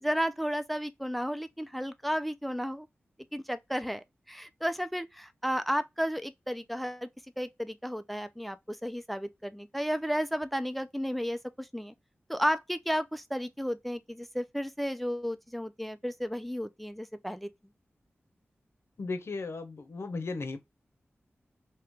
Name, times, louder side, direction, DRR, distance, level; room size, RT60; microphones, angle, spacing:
voice 1, 0.0-2.9 3.3-7.1 7.4-11.9 12.3-17.5, equal, ahead, 0.4 m, -33 dB
voice 2, 19.0-20.6, left 3 dB, 70° left, 0.7 m, -35 dB
3.2 x 2.9 x 3.4 m
wide cardioid pair, 60°, 4 cm